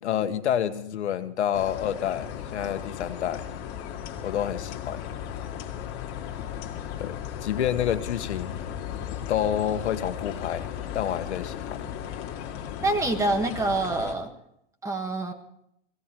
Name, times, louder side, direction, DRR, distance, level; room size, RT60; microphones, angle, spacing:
voice 1, 0.0-3.5 4.2-5.0 7.0-8.5 9.2-10.7 10.9-11.8, left 10 dB, 90° left, 10 dB, 1.4 m, -28 dB
sound 1, 1.5-14.1, left 9 dB, 40° left, 2.3 m, -36 dB
voice 2, 12.8-14.3 14.8-15.3, right 2 dB, 10° right, 3 dB, 1.6 m, -26 dB
17.5 x 17.0 x 4.5 m, 0.73 s
supercardioid pair, 145°, 33 cm